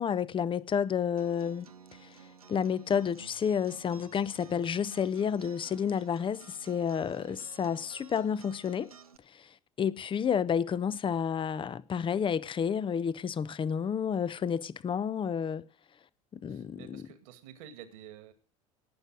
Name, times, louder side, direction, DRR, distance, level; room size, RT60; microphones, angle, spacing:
voice 1, 0.0-1.7 2.0-2.1 2.5-8.9 9.3-9.5 9.8-15.6 16.4-17.1, left 7 dB, 30° left, 0.8 m, -30 dB
Acoustic guitar, 1.2-9.2, right 5 dB, 90° right, 0.8 m, -54 dB
voice 2, 7.0-7.5 16.5-18.3, right 10 dB, 65° right, 2.1 m, -50 dB
18.5 x 6.7 x 6.3 m
figure-of-eight pair, 65°, 18 cm